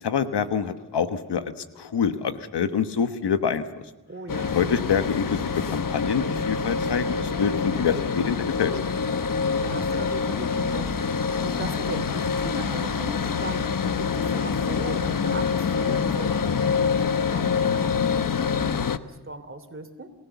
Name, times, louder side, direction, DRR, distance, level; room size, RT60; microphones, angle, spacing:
voice 1, 0.0-3.6 4.4-8.7, left 7 dB, 80° left, 10 dB, 1.3 m, -26 dB
voice 2, 4.1-4.6 9.6-18.8 19.1-20.1, right 2 dB, 30° right, 8 dB, 3.2 m, -39 dB
sound 1, 4.3-19.0, left 5 dB, 55° left, 1.1 m, -26 dB
29.0 x 16.0 x 7.1 m, 1.1 s
cardioid pair, 50°, 40 cm